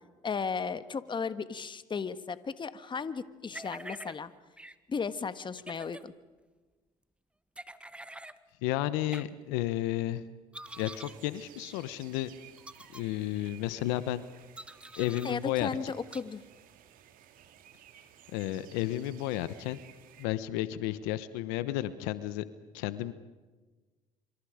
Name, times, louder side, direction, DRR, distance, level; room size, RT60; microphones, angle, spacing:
voice 1, 0.2-4.3 4.9-6.1 15.2-16.4, left 5 dB, 35° left, 13 dB, 1.5 m, -35 dB
sound 1, 3.5-4.2 4.6-4.7 5.6-6.0 7.6-8.4 9.1-9.2 10.5-11.2 11.6-11.7 12.6-13.0 14.6-15.3 16.1-16.2, right 1 dB, 5° right, 1.3 m, -45 dB
voice 2, 8.6-10.3 10.8-12.3 12.9-14.2 15.0-15.9 18.3-19.8 20.2-22.4 22.7-23.1, left 14 dB, 90° left, 14 dB, 1.1 m, -32 dB
sound 2, 10.7-20.3, right 11 dB, 70° right, 2.4 m, -56 dB
27.0 x 26.0 x 5.1 m, 1.3 s
supercardioid pair, 75°, 15 cm